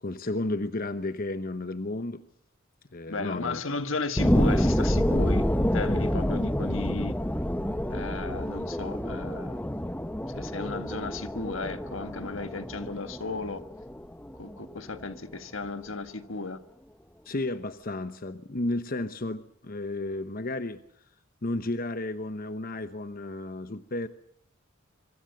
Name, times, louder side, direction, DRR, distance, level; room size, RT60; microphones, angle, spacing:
voice 1, 0.0-2.2 2.9-3.6 17.2-20.8 21.4-24.1, left 2 dB, 45° left, 1.0 m, -32 dB
voice 2, 3.1-7.1 7.9-9.6 10.3-13.6 14.4-16.6, left 3 dB, 75° left, 1.7 m, -35 dB
sound 1, 4.2-15.2 15.6-15.7, equal, 10° left, 1.0 m, -28 dB
25.5 x 24.5 x 6.7 m
head